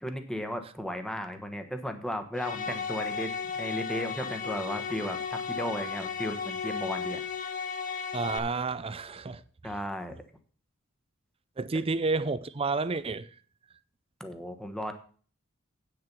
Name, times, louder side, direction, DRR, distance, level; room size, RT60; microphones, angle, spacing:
voice 1, 0.0-3.3 3.6-7.2 9.6-10.2 14.2-14.9, equal, 5° left, 1.1 m, -35 dB
sound 1, 2.3-8.4, left 6 dB, 40° left, 1.0 m, -35 dB
voice 2, 8.1-9.7 11.6-13.3, right 3 dB, 30° right, 0.5 m, -30 dB
8.7 x 6.8 x 6.0 m
head